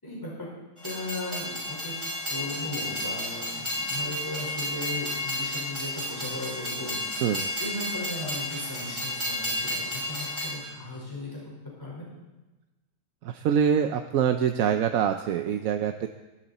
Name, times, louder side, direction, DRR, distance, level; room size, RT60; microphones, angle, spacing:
voice 1, 0.0-0.5 0.8-7.2 7.6-11.4 11.8-12.1, left 2 dB, 10° left, -5 dB, 4.8 m, -37 dB
Train, 0.8-10.5, left 1 dB, 15° right, 5.7 m, -32 dB
voice 2, 7.2-7.5 13.2-16.1, right 8 dB, 65° right, 7 dB, 1.0 m, -25 dB
23.0 x 11.5 x 4.2 m, 1.1 s
omnidirectional pair, 1.7 m